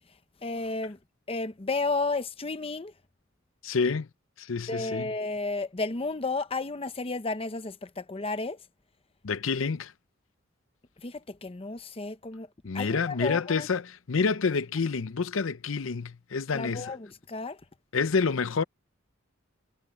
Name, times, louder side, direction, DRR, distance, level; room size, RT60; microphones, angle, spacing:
voice 1, 0.4-1.0 1.3-2.9 4.7-8.6 11.0-12.5 12.7-13.7 16.5-17.6, left 3 dB, 30° left, 0.8 m, -32 dB
voice 2, 3.6-4.1 4.4-5.1 9.2-9.9 12.6-16.9 17.9-18.6, left 5 dB, 75° left, 0.6 m, -28 dB
head